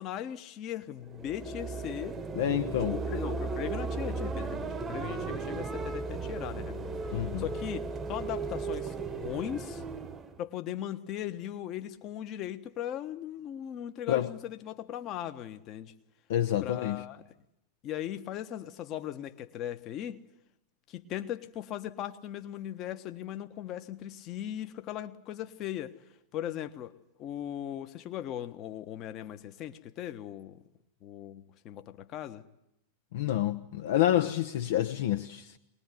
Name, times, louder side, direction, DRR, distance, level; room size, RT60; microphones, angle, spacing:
voice 1, 0.0-2.2 3.0-9.8 10.4-15.9 16.6-17.2 17.8-20.2 20.9-25.9 26.3-30.6 31.0-32.4, left 11 dB, 35° left, 1.3 m, -38 dB
sound 1, 1.0-10.4, right 4 dB, 20° right, 1.1 m, -36 dB
voice 2, 2.4-3.0 7.1-7.4 14.1-14.3 16.3-17.0 33.1-35.6, left 12 dB, 55° left, 0.9 m, -28 dB
23.0 x 20.5 x 9.5 m
figure-of-eight pair, 90°, 0 cm